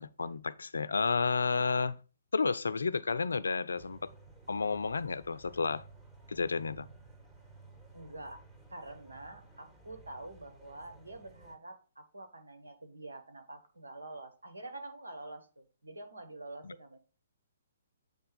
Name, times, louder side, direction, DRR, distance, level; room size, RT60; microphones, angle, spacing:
voice 1, 0.0-2.0 2.3-4.1 4.5-5.8 6.3-6.9 16.6-16.7, left 4 dB, 80° left, 0.4 m, -31 dB
sound 1, 3.7-11.5, right 3 dB, 10° right, 2.3 m, -55 dB
voice 2, 7.9-8.4 8.7-17.0, right 2 dB, 85° right, 1.7 m, -47 dB
7.8 x 3.4 x 5.4 m
figure-of-eight pair, 130°, 0 cm